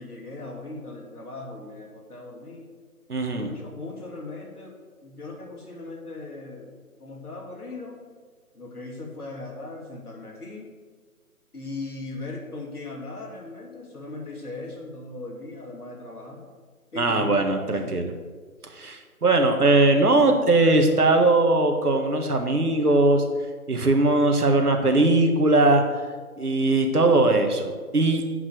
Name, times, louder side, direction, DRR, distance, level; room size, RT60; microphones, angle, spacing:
voice 1, 0.0-2.7 3.3-8.0 8.5-10.7 11.5-16.4 16.9-17.3 17.7-18.0, left 2 dB, 75° left, 0 dB, 2.9 m, -38 dB
voice 2, 3.1-3.5 17.0-18.1 18.7-23.2 23.7-25.8 26.4-28.2, right 2 dB, 75° right, 4 dB, 1.8 m, -20 dB
8.1 x 6.0 x 8.1 m, 1.5 s
figure-of-eight pair, 155°, 45 cm